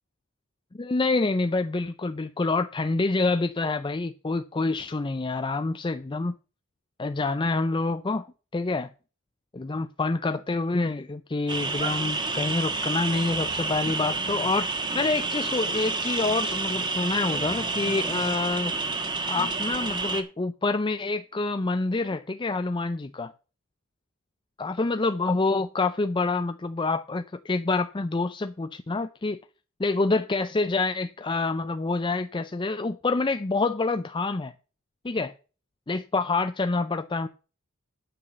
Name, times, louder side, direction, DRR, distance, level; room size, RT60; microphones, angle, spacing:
voice 1, 0.7-6.3 7.0-8.3 8.5-8.9 9.5-18.7 19.3-23.3 24.6-29.4 29.8-34.5 35.0-35.3 35.9-37.3, left 3 dB, 20° left, 0.5 m, -27 dB
sound 1, 11.5-20.2, right 3 dB, 20° right, 1.4 m, -29 dB
9.5 x 5.9 x 7.2 m
head